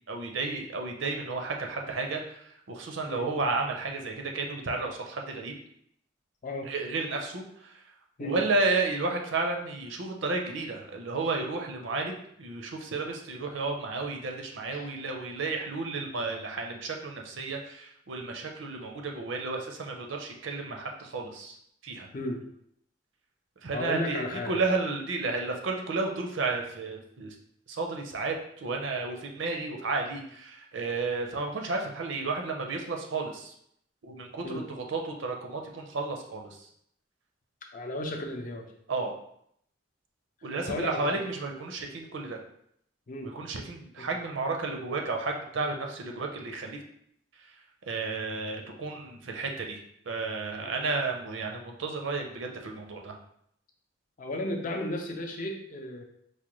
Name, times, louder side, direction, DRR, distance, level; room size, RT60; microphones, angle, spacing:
voice 1, 0.1-5.5 6.6-7.7 8.2-21.6 21.8-22.1 23.6-27.3 27.7-33.5 34.0-36.7 38.9-39.1 40.4-42.4 43.2-46.8 47.9-49.8 50.1-53.2, right 3 dB, 75° right, 2 dB, 0.6 m, -32 dB
voice 2, 23.7-24.5 34.4-34.7 37.7-38.7 40.6-41.2 43.1-43.3 44.0-44.2 50.6-50.7 54.2-56.0, left 1 dB, 40° left, 2 dB, 0.5 m, -34 dB
4.7 x 2.2 x 3.0 m, 0.70 s
head